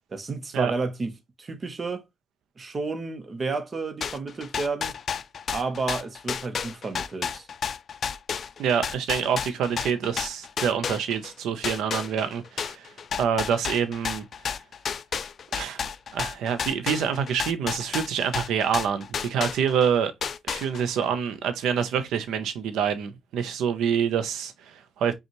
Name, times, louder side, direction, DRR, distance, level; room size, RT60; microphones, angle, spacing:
voice 1, 0.1-1.1 1.4-2.0 2.6-4.9 5.5-7.5, right 3 dB, 35° right, 0.9 m, -31 dB
sound 1, 4.0-11.3 11.6-19.9 20.2-21.0, left 7 dB, 50° left, 0.4 m, -31 dB
voice 2, 8.6-12.9 13.2-14.2 15.5-15.8 16.1-20.1 20.4-25.1, right 7 dB, 80° right, 0.7 m, -26 dB
5.3 x 2.4 x 3.0 m
cardioid pair, 90°, 0 cm